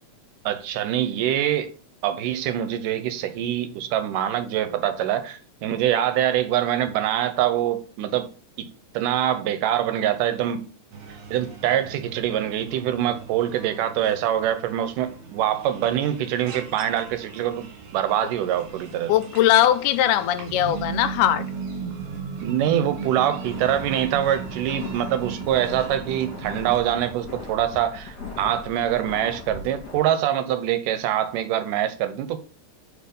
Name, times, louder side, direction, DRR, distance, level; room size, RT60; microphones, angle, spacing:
voice 1, 0.5-1.7 2.0-8.3 8.6-8.7 8.9-10.6 11.3-19.1 22.4-32.4, right 11 dB, 85° right, 2.3 m, -24 dB
sound 1, 10.9-26.8, right 5 dB, 65° right, 2.9 m, -37 dB
voice 2, 19.1-21.5, left 12 dB, 80° left, 2.0 m, -20 dB
sound 2, 23.4-30.0, left 3 dB, 35° left, 2.5 m, -39 dB
4.8 x 4.6 x 5.2 m
omnidirectional pair, 3.7 m